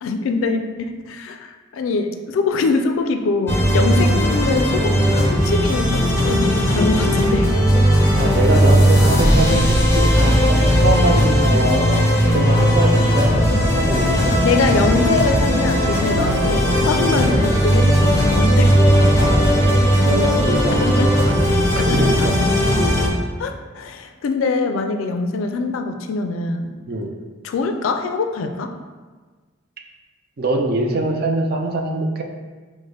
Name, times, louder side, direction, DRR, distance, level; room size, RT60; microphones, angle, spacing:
voice 1, 0.0-7.5 14.4-18.8 20.7-21.1 21.8-22.3 23.4-26.7 27.4-28.7, left 3 dB, 80° left, 6 dB, 0.3 m, -23 dB
sound 1, 3.5-23.1, equal, 15° left, 0.5 m, -17 dB
voice 2, 8.1-14.3 17.0-17.3 19.2-20.8 21.3-21.4 21.8-22.3 26.9-27.1 30.4-32.2, right 2 dB, 50° right, 3 dB, 0.4 m, -23 dB
5.2 x 2.1 x 3.2 m, 1.4 s
head